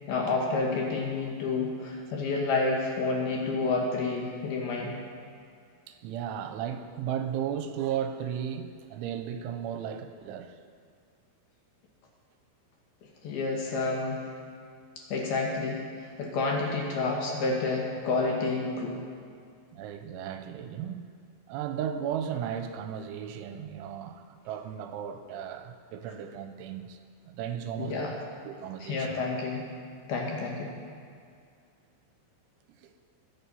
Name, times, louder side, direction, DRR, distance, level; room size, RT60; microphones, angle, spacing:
voice 1, 0.1-5.0 13.2-14.3 15.1-19.0 27.8-28.1 28.8-29.7 30.1-30.7, left 3 dB, 65° left, 0 dB, 2.8 m, -29 dB
voice 2, 5.9-10.6 19.7-21.1 21.5-27.0 27.3-29.2 32.8-32.9, right 9 dB, 85° right, 7 dB, 3.0 m, -35 dB
21.0 x 8.9 x 5.5 m, 2.3 s
omnidirectional pair, 5.7 m